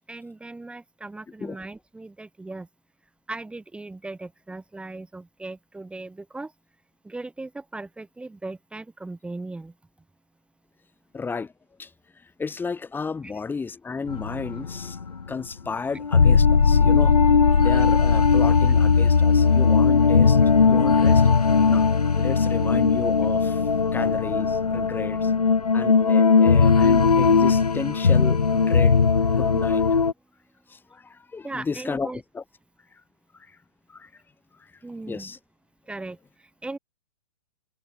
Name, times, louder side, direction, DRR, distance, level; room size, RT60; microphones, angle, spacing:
voice 1, 0.1-2.7 3.3-6.5 7.0-9.7 13.2-13.3 31.4-32.2 34.8-35.3 35.9-36.8, right 2 dB, 5° right, 6.6 m, -38 dB
voice 2, 11.1-11.5 11.8-11.9 12.2-15.0 15.3-17.2 17.6-20.4 20.7-21.3 21.7-21.9 22.2-25.3 25.7-29.0 29.3-29.9 30.7-32.4 33.4-33.6 33.9-34.1 34.6-34.7 35.1-35.4, left 4 dB, 10° left, 6.8 m, -33 dB
sound 1, 14.1-15.4 16.0-30.1, left 5 dB, 85° left, 2.5 m, -18 dB
hypercardioid pair, 125°, 19 cm